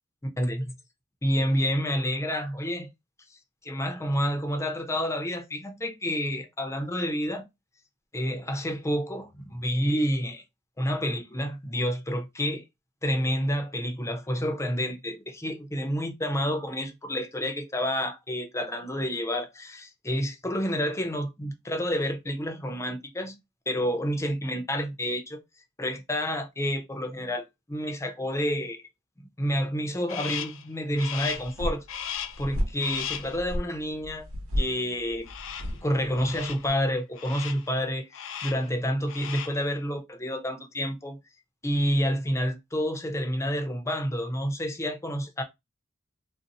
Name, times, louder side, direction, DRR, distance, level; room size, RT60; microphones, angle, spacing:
voice 1, 1.2-2.9 3.6-7.4 8.1-10.4 10.8-12.6 13.0-23.4 23.7-25.4 25.8-28.8 29.4-34.3 34.6-35.3 35.8-41.2 41.6-45.4, equal, 15° left, 0.5 m, -29 dB
Crow, 30.1-30.6 31.0-31.5 31.9-32.5 32.8-33.4 35.3-35.8 36.2-36.7 37.2-37.7 38.1-38.7 39.0-39.6, left 9 dB, 65° left, 0.4 m, -36 dB
sound 1, 31.3-36.7, equal, 85° right, 1.0 m, -34 dB
2.6 x 2.0 x 3.9 m
head